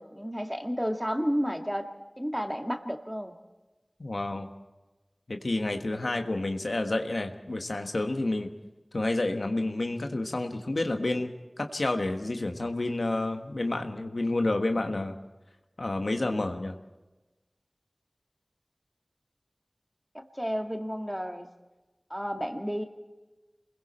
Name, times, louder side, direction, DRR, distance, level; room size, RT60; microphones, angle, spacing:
voice 1, 0.0-1.9 2.2-3.3 20.1-21.5 22.1-22.9, equal, 5° right, 4 dB, 2.1 m, -31 dB
voice 2, 4.0-4.5 5.3-8.5 8.9-11.3 11.6-15.1 15.8-16.8, left 2 dB, 85° left, 5 dB, 1.4 m, -29 dB
28.5 x 22.0 x 4.4 m, 1.1 s
wide cardioid pair, 40°, 0 cm